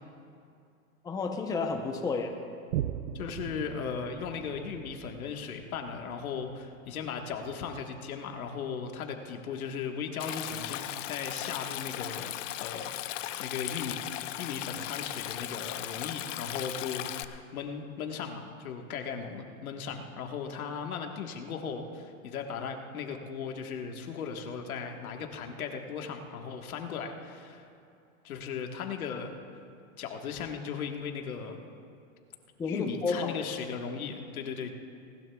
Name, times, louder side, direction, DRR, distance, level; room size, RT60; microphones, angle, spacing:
voice 1, 1.0-2.4 32.6-33.4, left 4 dB, 10° left, 3 dB, 0.7 m, -31 dB
Boom, 2.7-9.6 10.2-10.3, right 12 dB, 85° right, 0.6 m, -41 dB
voice 2, 3.1-14.0 14.4-27.7 28.2-29.3 30.0-31.7 32.6-34.8, left 6 dB, 90° left, 4 dB, 1.5 m, -37 dB
Stream, 10.2-17.2, left 13 dB, 60° left, 0.7 m, -37 dB
19.5 x 19.5 x 2.3 m, 2.5 s
supercardioid pair, 140°, 42 cm